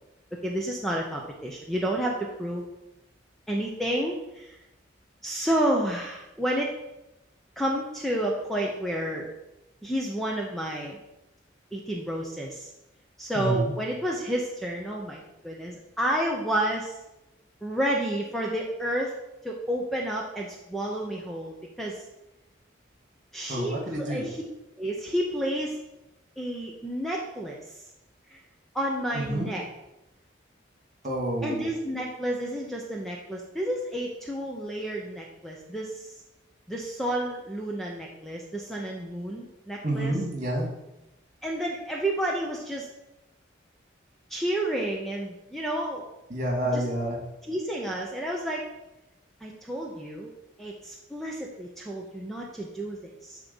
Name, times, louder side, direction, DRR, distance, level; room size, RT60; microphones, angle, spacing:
voice 1, 0.4-2.6 3.5-4.6 5.2-6.7 7.6-9.3 9.8-11.0 11.7-12.7 13.2-17.0 17.6-19.2 19.4-22.0 23.3-24.4 24.8-25.8 26.4-27.6 28.3-28.4 28.7-29.6 31.4-36.1 36.7-40.1 41.4-42.9 44.3-46.1 46.7-46.8 47.5-48.6 49.4-50.3 50.6-53.4, right 1 dB, ahead, -1 dB, 0.7 m, -30 dB
voice 2, 13.3-13.7 23.5-24.3 29.1-29.5 31.0-31.7 39.8-40.7 46.3-47.2, right 1 dB, 40° right, 0 dB, 2.3 m, -28 dB
10.5 x 3.6 x 5.5 m, 0.93 s
head